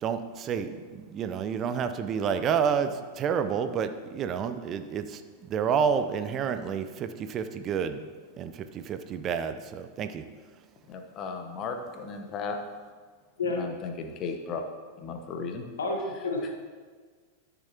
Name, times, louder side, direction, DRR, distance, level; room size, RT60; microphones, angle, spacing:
voice 1, 0.0-8.1 8.4-10.2, right 7 dB, 30° right, 9 dB, 0.5 m, -29 dB
voice 2, 10.9-12.6 13.5-14.6 15.0-15.6, left 5 dB, 35° left, 5 dB, 1.0 m, -35 dB
voice 3, 15.8-16.5, left 2 dB, 65° left, 0 dB, 1.3 m, -30 dB
13.0 x 7.0 x 2.9 m, 1.5 s
figure-of-eight pair, 90°, 0 cm